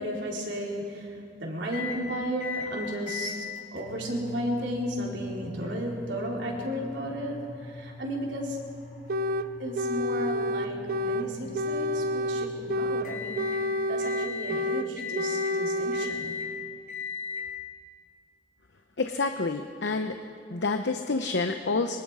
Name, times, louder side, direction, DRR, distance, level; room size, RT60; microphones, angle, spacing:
voice 1, 0.0-3.5 3.7-8.6 9.6-13.5 13.9-16.3, equal, 75° right, -2 dB, 4.0 m, -34 dB
sound 1, 1.7-2.0 2.4-2.7 3.1-13.6 14.0-14.6 15.0-15.5 15.9-16.5 16.9-17.4, left 5 dB, 50° left, 5.0 m, -40 dB
sound 2, 9.1-9.5 9.8-11.3 11.5-13.1 13.4-14.9 15.1-16.1, left 1 dB, 55° right, 0.6 m, -29 dB
voice 2, 19.0-20.2 20.5-22.0, left 3 dB, 70° left, 6 dB, 0.8 m, -28 dB
24.5 x 23.0 x 4.9 m, 2.5 s
head